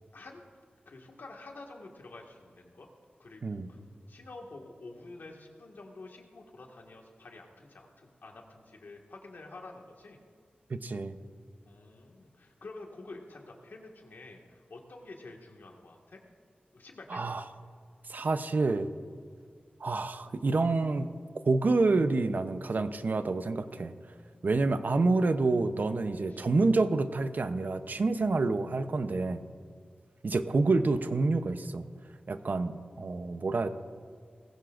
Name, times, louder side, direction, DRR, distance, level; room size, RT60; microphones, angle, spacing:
voice 1, 0.9-2.9 3.2-3.8 4.1-10.2 11.6-16.2 16.7-17.2 24.1-24.2 26.3-26.5, left 2 dB, 80° left, 1 dB, 1.8 m, -48 dB
voice 2, 3.4-3.7 10.7-11.2 17.1-17.5 18.1-18.9 19.8-21.1 21.4-23.9 24.4-29.4 30.2-31.8 32.3-33.7, right 3 dB, 65° right, 10 dB, 0.7 m, -28 dB
19.5 x 16.0 x 2.6 m, 2.1 s
wide cardioid pair, 75°, 3 cm